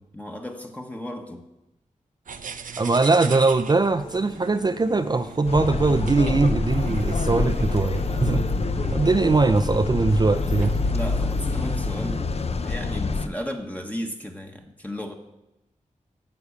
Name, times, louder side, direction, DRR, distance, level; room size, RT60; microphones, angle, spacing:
voice 1, 0.1-1.4 6.5-7.0 7.4-7.5 10.9-15.1, equal, 10° left, 3 dB, 1.1 m, -35 dB
sound 1, 2.3-12.1, right 6 dB, 80° right, 0.6 m, -41 dB
voice 2, 2.8-8.4 8.9-10.7, right 3 dB, 30° right, 8 dB, 0.4 m, -21 dB
sound 2, 4.0-12.0, left 2 dB, 90° left, 2.5 m, -45 dB
sound 3, 5.5-13.3, left 3 dB, 50° left, 0.7 m, -26 dB
9.7 x 6.8 x 8.3 m, 0.93 s
wide cardioid pair, 90°, 13 cm